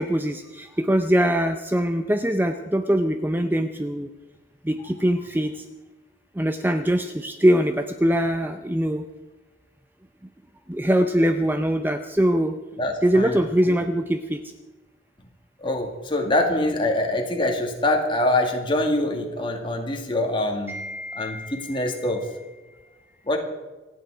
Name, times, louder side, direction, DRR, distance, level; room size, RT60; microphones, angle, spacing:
voice 1, 0.0-4.1 4.6-5.6 6.3-9.1 10.7-12.6 13.0-14.4 20.7-22.1, equal, 10° right, 8 dB, 0.6 m, -23 dB
voice 2, 12.8-13.4 13.7-13.8 15.6-20.8 21.1-22.2 23.3-23.4, left 1 dB, 25° left, 2 dB, 2.3 m, -24 dB
27.5 x 9.2 x 5.0 m, 1.2 s
head